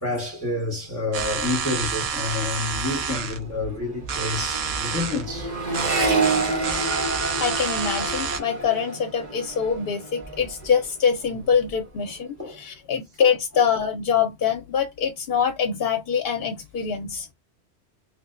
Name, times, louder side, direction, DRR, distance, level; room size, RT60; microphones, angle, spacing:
voice 1, 0.0-5.5 12.4-12.6 13.2-13.3, left 3 dB, 15° left, 0.9 m, -29 dB
sound 1, 1.1-8.4, right 6 dB, 75° right, 0.9 m, -29 dB
Accelerating revving vroom, 3.0-3.1 3.3-10.9 11.2-11.8, right 3 dB, 45° right, 1.0 m, -29 dB
voice 2, 7.4-17.3, left 7 dB, 65° left, 0.7 m, -24 dB
3.1 x 2.0 x 3.6 m
omnidirectional pair, 1.1 m